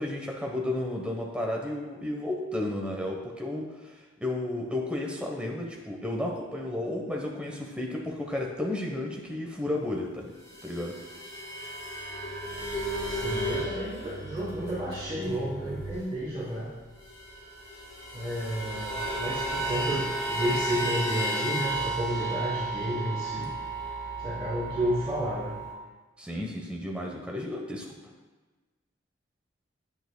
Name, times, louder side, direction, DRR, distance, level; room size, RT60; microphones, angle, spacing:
voice 1, 0.0-3.9 4.2-10.3 10.6-11.0 26.2-27.9, left 1 dB, 5° right, 0 dB, 0.9 m, -32 dB
sound 1, 10.4-16.2 16.5-16.6 16.8-25.7, right 1 dB, 15° left, 2.2 m, -34 dB
voice 2, 13.1-16.7 18.1-23.5 24.2-25.6, equal, 25° right, -10 dB, 2.4 m, -31 dB
11.0 x 8.9 x 2.2 m, 1.3 s
head